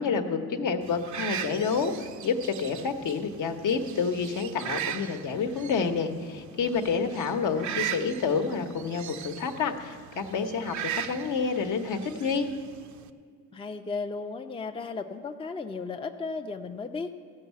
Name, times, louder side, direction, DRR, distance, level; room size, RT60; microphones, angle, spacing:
voice 1, 0.0-12.5, left 5 dB, 60° left, 5 dB, 1.2 m, -29 dB
sound 1, 0.8-13.1, right 10 dB, 55° right, 0.7 m, -39 dB
voice 2, 13.5-17.1, left 4 dB, 15° left, 5 dB, 0.6 m, -35 dB
14.5 x 5.5 x 8.2 m, 2.1 s
supercardioid pair, 80°, 36 cm